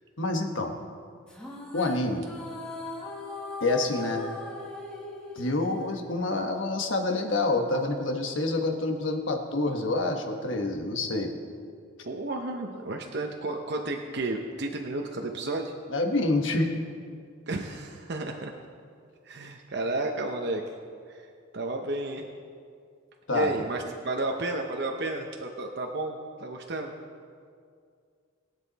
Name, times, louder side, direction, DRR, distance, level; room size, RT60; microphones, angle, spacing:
voice 1, 0.2-0.7 1.7-2.2 3.6-4.2 5.3-11.3 15.9-16.7 23.3-23.5, left 2 dB, 65° left, 4 dB, 1.3 m, -27 dB
sound 1, 1.3-6.8, left 2 dB, 5° left, 1.6 m, -39 dB
voice 2, 12.0-15.7 17.5-18.5 19.2-20.6 21.1-21.3 21.5-22.2 23.3-26.9, right 2 dB, 55° right, 2 dB, 0.8 m, -32 dB
21.5 x 8.1 x 4.1 m, 2.2 s
head